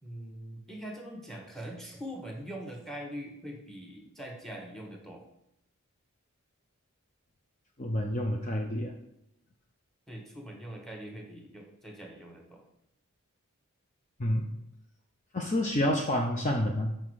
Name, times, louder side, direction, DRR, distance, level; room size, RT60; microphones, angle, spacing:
voice 1, 0.0-5.2 10.1-12.6, equal, ahead, 1 dB, 1.2 m, -42 dB
voice 2, 7.8-8.9 14.2-14.5 15.3-16.9, left 1 dB, 30° left, 2 dB, 0.6 m, -28 dB
5.7 x 5.1 x 6.2 m, 0.79 s
head